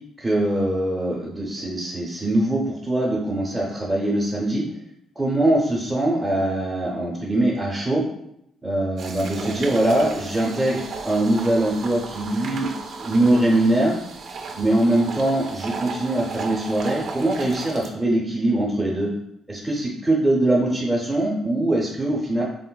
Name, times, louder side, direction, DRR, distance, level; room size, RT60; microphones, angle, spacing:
voice 1, 0.2-4.6 5.2-8.0 8.6-12.7 13.0-14.0 14.5-19.1 19.5-22.4, right 1 dB, 10° right, -5 dB, 0.6 m, -22 dB
sound 1, 9.0-17.9, right 4 dB, 60° right, 0.3 m, -35 dB
3.8 x 2.0 x 2.2 m, 0.77 s
cardioid pair, 90°, 0 cm